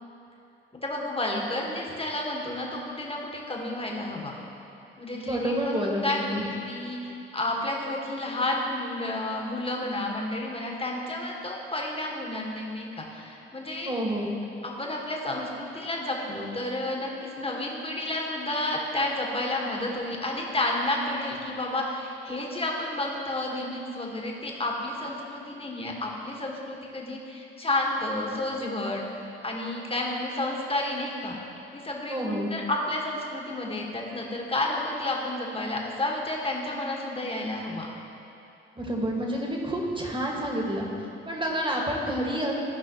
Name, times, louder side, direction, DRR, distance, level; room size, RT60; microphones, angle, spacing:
voice 1, 0.8-4.3 5.0-13.9 14.6-31.4 31.7-37.9, left 1 dB, 20° left, -1 dB, 1.7 m, -31 dB
voice 2, 5.2-6.4 13.9-14.3 32.1-32.5 38.8-40.9 41.3-42.5, equal, 15° right, -2 dB, 1.9 m, -29 dB
15.5 x 5.5 x 3.1 m, 2.8 s
hypercardioid pair, 45°, 29 cm